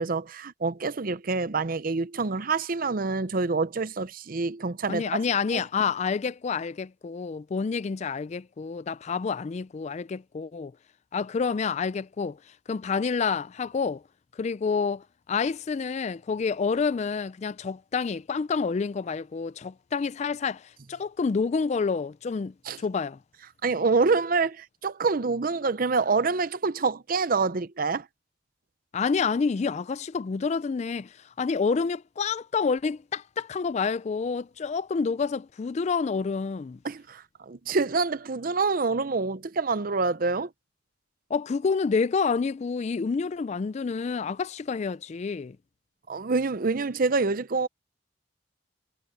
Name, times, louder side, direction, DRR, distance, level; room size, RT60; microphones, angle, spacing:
voice 1, 0.0-5.2 5.5-5.6 22.7-22.8 23.6-28.1 36.8-40.5 46.1-47.7, right 4 dB, 50° right, 0.6 m, -26 dB
voice 2, 4.9-10.7 11.1-12.4 12.7-14.0 14.4-23.2 28.9-36.8 41.3-45.6, left 5 dB, 35° left, 0.3 m, -28 dB
head